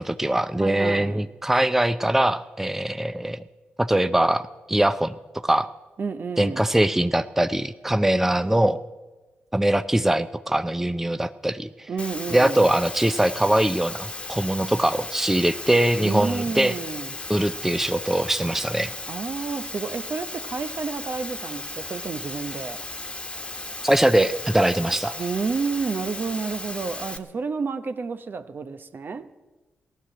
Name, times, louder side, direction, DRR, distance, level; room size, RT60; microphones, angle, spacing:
voice 1, 0.0-3.4 3.8-5.1 5.4-5.7 6.4-8.8 9.5-11.9 12.3-16.7 17.3-18.9 23.8-25.2, right 1 dB, 10° right, 0.6 m, -22 dB
voice 2, 0.6-1.3 6.0-6.7 11.9-12.6 16.0-17.1 19.1-22.8 25.2-29.3, right 4 dB, 50° right, 0.9 m, -30 dB
Water, 12.0-27.2, left 2 dB, 25° left, 1.4 m, -36 dB
15.5 x 11.5 x 7.6 m
supercardioid pair, 50°, 4 cm